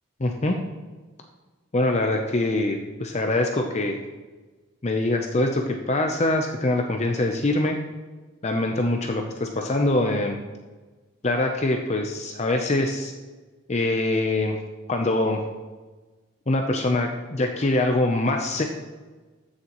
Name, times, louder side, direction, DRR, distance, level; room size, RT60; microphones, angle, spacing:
voice 1, 0.2-0.6 1.7-4.0 4.8-7.8 8.4-10.4 11.2-13.1 13.7-14.6 14.9-15.4 16.5-18.6, left 2 dB, 35° left, 3 dB, 0.6 m, -24 dB
14.5 x 6.5 x 3.0 m, 1.3 s
head